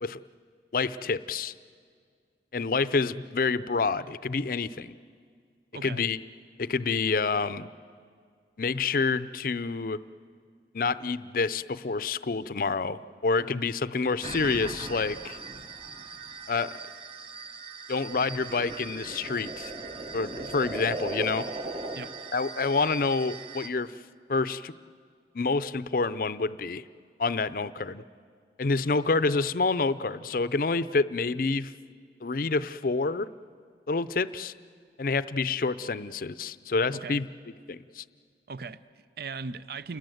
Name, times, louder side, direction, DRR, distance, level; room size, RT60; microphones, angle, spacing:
voice 1, 0.7-1.5 2.5-4.9 5.8-6.2 6.6-7.7 8.6-10.0 10.7-15.4 16.5-16.7 17.9-19.7 20.1-21.5 22.3-23.9 24.3-24.7 25.3-26.8 27.2-28.0 28.6-31.7 32.2-33.3 33.9-34.5 35.0-37.3 37.7-38.0, left 4 dB, 50° left, 15 dB, 0.5 m, -28 dB
voice 2, 5.7-6.1 21.9-22.1 36.9-37.2 38.5-40.0, right 4 dB, 55° right, 15 dB, 0.6 m, -38 dB
sound 1, 14.2-23.7, right 3 dB, 30° right, 1.0 m, -38 dB
29.0 x 21.0 x 7.9 m, 2.1 s
head